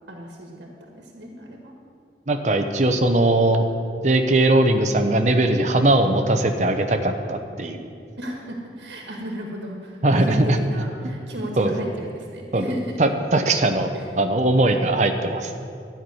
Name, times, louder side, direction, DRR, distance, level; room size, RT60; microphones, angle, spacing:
voice 1, 0.1-0.7 0.9-1.7 8.2-13.2 13.9-14.0, equal, 85° right, 0 dB, 1.6 m, -34 dB
voice 2, 2.3-3.6 4.0-7.8 10.0-10.6 11.6-11.7 12.5-12.7 13.0-13.9 14.2-15.5, right 2 dB, 40° right, 6 dB, 0.8 m, -20 dB
12.0 x 6.0 x 9.3 m, 2.3 s
head